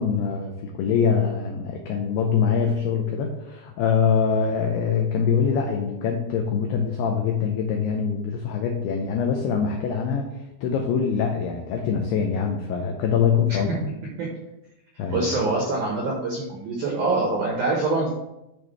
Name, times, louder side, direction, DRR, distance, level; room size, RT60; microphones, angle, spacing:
voice 1, 0.0-10.3 10.6-13.7 15.0-15.4, left 6 dB, 80° left, 2 dB, 2.3 m, -24 dB
voice 2, 15.1-18.1, right 3 dB, 70° right, -3 dB, 1.9 m, -25 dB
11.0 x 4.4 x 3.3 m, 0.89 s
omnidirectional pair, 5.4 m